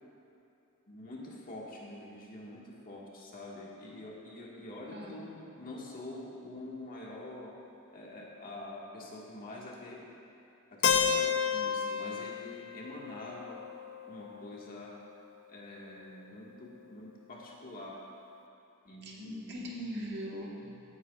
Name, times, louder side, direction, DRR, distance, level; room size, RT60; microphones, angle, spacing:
voice 1, 0.9-7.6 7.9-10.0 10.7-13.6 14.1-15.0 15.5-18.0 18.8-19.7, left 1 dB, 40° left, -4 dB, 1.8 m, -46 dB
voice 2, 4.9-5.3 19.0-20.8, equal, 50° right, -3 dB, 1.4 m, -40 dB
Keyboard (musical), 10.8-14.7, left 7 dB, 60° left, 0.5 m, -32 dB
17.0 x 9.4 x 2.4 m, 2.8 s
head